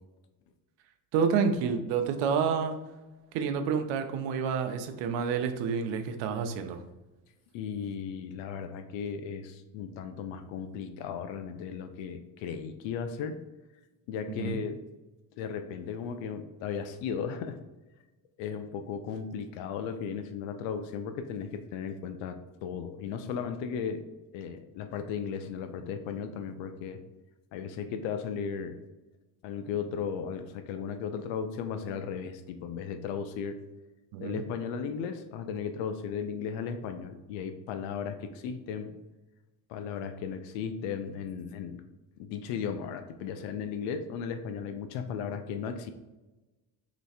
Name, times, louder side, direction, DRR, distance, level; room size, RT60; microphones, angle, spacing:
voice 1, 1.1-2.8 3.3-6.8 14.4-14.6 34.1-34.4, right 6 dB, 80° right, 7 dB, 0.7 m, -29 dB
voice 2, 7.5-13.4 14.1-14.8 15.4-17.6 18.4-24.1 24.3-27.0 27.5-28.8 29.4-33.6 34.2-38.9 39.7-41.8 42.2-45.9, left 7 dB, 85° left, 8 dB, 0.6 m, -36 dB
3.2 x 3.1 x 4.1 m, 1.1 s
cardioid pair, 105°, 43 cm